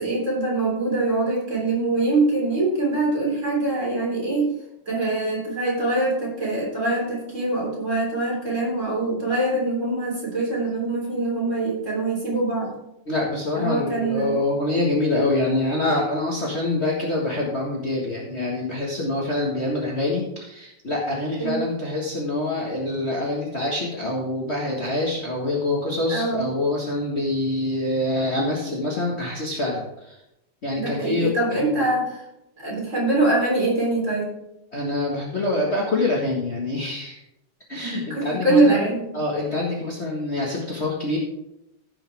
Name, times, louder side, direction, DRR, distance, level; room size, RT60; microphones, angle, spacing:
voice 1, 0.0-4.5 4.9-12.7 13.6-14.4 21.4-21.6 26.1-26.4 30.8-32.2 32.6-34.3 37.8-39.1, right 2 dB, 30° right, -3 dB, 3.7 m, -23 dB
voice 2, 13.1-30.1 30.6-31.8 34.7-37.2 37.7-38.7 39.1-41.2, left 2 dB, 35° left, -3 dB, 1.6 m, -25 dB
15.5 x 6.2 x 3.5 m, 0.86 s
omnidirectional pair, 2.4 m